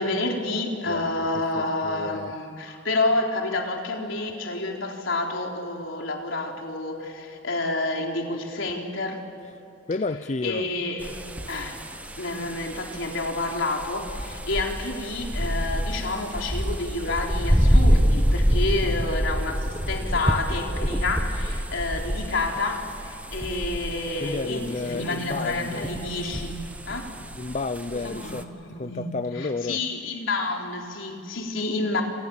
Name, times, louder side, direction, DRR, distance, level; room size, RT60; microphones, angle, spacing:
voice 1, 0.0-9.2 10.4-11.1 11.5-11.8 12.2-27.1 28.0-29.1 29.4-32.0, left 2 dB, 75° left, 1 dB, 4.1 m, -29 dB
voice 2, 0.9-2.4 9.9-10.7 12.2-12.4 24.2-25.9 27.4-29.8, left 3 dB, 35° left, 11 dB, 0.5 m, -32 dB
sound 1, 11.0-28.4, equal, 10° right, 1.4 m, -27 dB
29.0 x 27.5 x 7.3 m, 2.8 s
head